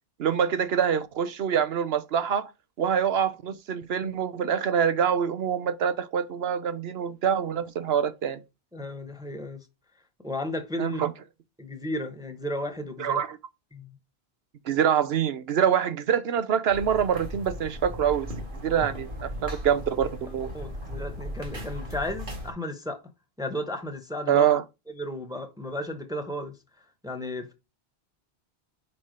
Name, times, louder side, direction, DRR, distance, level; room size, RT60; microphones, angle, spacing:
voice 1, 0.2-2.5 2.8-8.4 10.8-11.1 13.0-13.4 14.7-18.3 18.6-20.5 24.3-24.6, right 8 dB, 75° right, 1.0 m, -25 dB
voice 2, 8.7-9.7 10.2-11.0 11.6-13.2 13.7-13.9 20.5-23.0 23.4-24.5 25.0-26.5 27.0-27.5, left 1 dB, 5° right, 1.0 m, -34 dB
sound 1, 16.7-22.5, equal, 55° right, 2.2 m, -37 dB
4.9 x 4.8 x 5.2 m
omnidirectional pair, 1.1 m